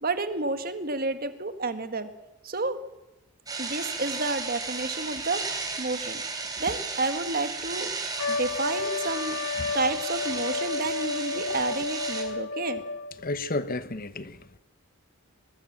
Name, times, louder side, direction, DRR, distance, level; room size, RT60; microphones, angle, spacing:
voice 1, 0.0-2.1 2.4-2.8 3.6-6.2 6.6-7.9 8.3-9.5 9.7-12.8, right 3 dB, 40° right, 9 dB, 1.8 m, -30 dB
sound 1, 3.5-12.2, right 4 dB, 15° right, 3.9 m, -34 dB
Trumpet, 8.2-13.2, left 4 dB, 70° left, 3.1 m, -32 dB
voice 2, 13.2-14.6, left 2 dB, 40° left, 14 dB, 1.0 m, -32 dB
23.5 x 21.0 x 7.5 m, 0.97 s
head